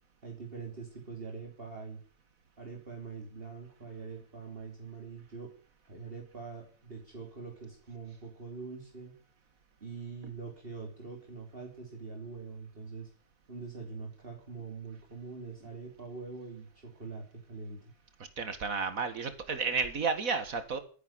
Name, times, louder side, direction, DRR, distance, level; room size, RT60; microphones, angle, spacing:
voice 1, 0.2-2.0 2.6-5.5 5.9-9.1 9.8-13.1 13.5-17.9, right 4 dB, 40° right, 0 dB, 3.6 m, -44 dB
voice 2, 18.4-20.8, right 5 dB, 80° right, 10 dB, 2.1 m, -32 dB
13.5 x 11.0 x 9.3 m, 0.41 s
omnidirectional pair, 1.4 m